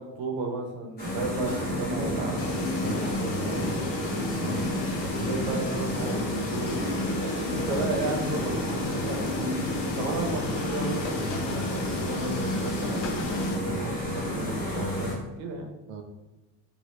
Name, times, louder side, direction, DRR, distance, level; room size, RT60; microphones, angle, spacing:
voice 1, 0.0-3.5 5.2-9.3 9.9-15.7, right 3 dB, 85° right, 2 dB, 0.8 m, -34 dB
sound 1, 1.0-15.1, left 1 dB, 20° left, 1.2 m, -30 dB
sound 2, 2.4-13.6, left 4 dB, 65° left, 0.5 m, -36 dB
voice 2, 4.0-4.8 7.8-7.9 15.9-16.0, right 5 dB, 50° right, 3 dB, 0.4 m, -41 dB
sound 3, 11.0-11.8 13.0-13.7, left 3 dB, 85° left, 0.9 m, -41 dB
2.9 x 2.4 x 3.2 m, 1.0 s
cardioid pair, 140°, 46 cm